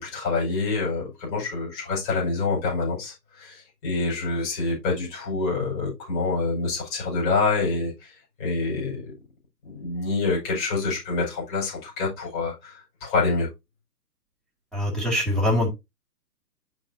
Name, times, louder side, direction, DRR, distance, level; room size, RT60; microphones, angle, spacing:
voice 1, 0.0-8.1 8.4-9.1 9.6-13.5, left 3 dB, 30° left, 5.4 m, -26 dB
voice 2, 14.7-15.7, left 1 dB, ahead, 2.3 m, -23 dB
12.0 x 4.3 x 2.8 m
hypercardioid pair, 155°, 50 cm